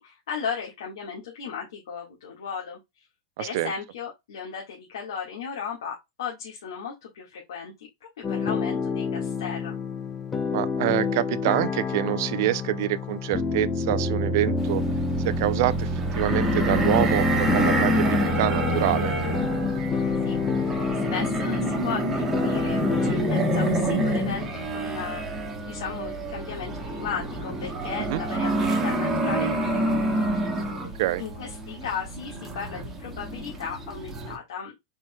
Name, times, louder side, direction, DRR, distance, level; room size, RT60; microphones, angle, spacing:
voice 1, 0.0-3.0 3.4-9.8 20.2-20.3 20.9-30.5 31.2-34.7, left 6 dB, 85° left, 1.7 m, -36 dB
voice 2, 3.4-3.7 10.5-14.8 15.2-15.9 16.1-19.2 28.0-28.2 31.0-31.2, right 15 dB, 50° right, 0.4 m, -26 dB
sound 1, 8.2-23.1, left 4 dB, 15° left, 0.6 m, -28 dB
sound 2, 14.6-34.4, right 1 dB, 10° right, 1.0 m, -27 dB
4.6 x 4.4 x 2.3 m
supercardioid pair, 170°, 2 cm